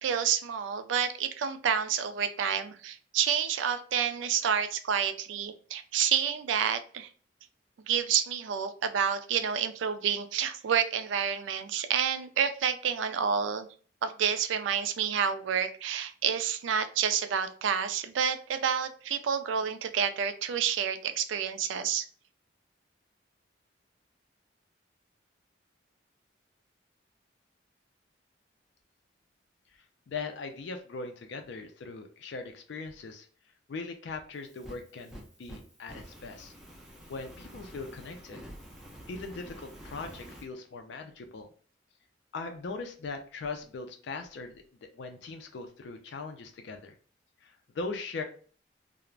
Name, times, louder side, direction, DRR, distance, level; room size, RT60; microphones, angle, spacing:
voice 1, 0.0-7.1 7.9-13.7 14.0-22.0, right 7 dB, 80° right, 9 dB, 0.3 m, -29 dB
voice 2, 30.1-33.3 33.7-36.5 37.1-38.4 39.1-41.5 42.3-44.6 44.9-46.9 47.4-48.2, left 3 dB, 65° left, 5 dB, 0.4 m, -40 dB
Fire, 34.3-40.5, equal, 5° right, 0.4 m, -48 dB
2.4 x 2.0 x 3.2 m, 0.42 s
head